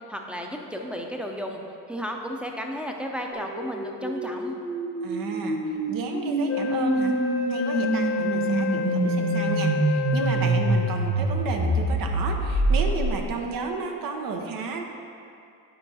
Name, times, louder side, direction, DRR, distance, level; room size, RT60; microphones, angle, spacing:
voice 1, 0.1-1.6 1.9-4.6, equal, 5° right, 1 dB, 0.6 m, -33 dB
sound 1, 3.3-13.4, right 2 dB, 90° right, 0.9 m, -26 dB
voice 2, 5.0-7.2 7.5-14.8, right 4 dB, 65° right, 3 dB, 0.8 m, -32 dB
Wind instrument woodwind instrument, 6.5-11.2, left 6 dB, 40° left, 0.6 m, -29 dB
8.4 x 4.5 x 2.8 m, 2.5 s
supercardioid pair, 60°, 37 cm